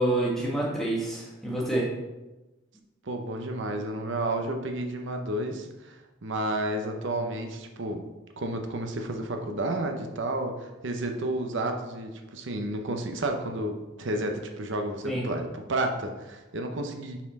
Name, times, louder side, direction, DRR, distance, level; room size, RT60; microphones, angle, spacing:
voice 1, 0.0-1.9 15.0-15.2, right 1 dB, ahead, -6 dB, 1.4 m, -27 dB
voice 2, 3.0-8.0 8.4-17.2, right 1 dB, 60° right, 4 dB, 0.7 m, -31 dB
6.0 x 4.2 x 4.1 m, 1.1 s
head